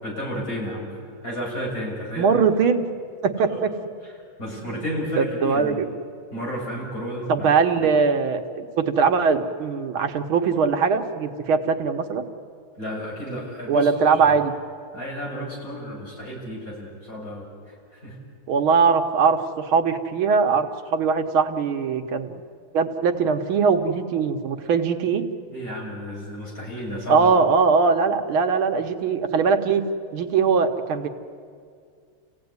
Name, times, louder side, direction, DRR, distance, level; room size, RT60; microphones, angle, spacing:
voice 1, 0.0-2.3 3.5-3.6 4.4-5.8 6.3-7.5 7.8-7.9 12.8-14.2 14.9-18.2 25.5-27.3, equal, 45° left, -3 dB, 6.9 m, -32 dB
voice 2, 2.2-2.8 3.2-3.7 4.5-4.9 5.2-5.7 7.3-12.2 13.7-14.5 18.5-22.4 22.7-25.2 27.1-29.8 30.1-31.1, right 5 dB, 90° right, 6 dB, 2.1 m, -21 dB
29.5 x 16.5 x 9.6 m, 2.2 s
omnidirectional pair, 2.2 m